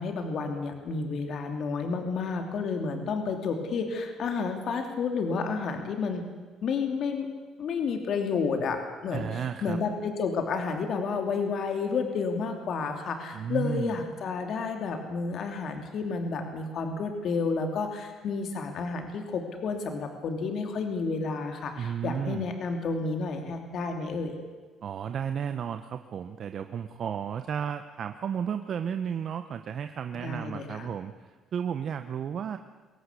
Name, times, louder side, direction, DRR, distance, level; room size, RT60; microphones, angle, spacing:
voice 1, 0.0-6.3 6.6-7.3 7.6-24.3 30.2-30.9, left 4 dB, 60° left, 5 dB, 3.0 m, -31 dB
voice 2, 9.1-9.8 13.3-14.0 21.8-22.5 24.8-32.6, right 8 dB, 55° right, 8 dB, 1.0 m, -33 dB
23.0 x 17.5 x 8.3 m, 1.4 s
cardioid pair, 105°, 0 cm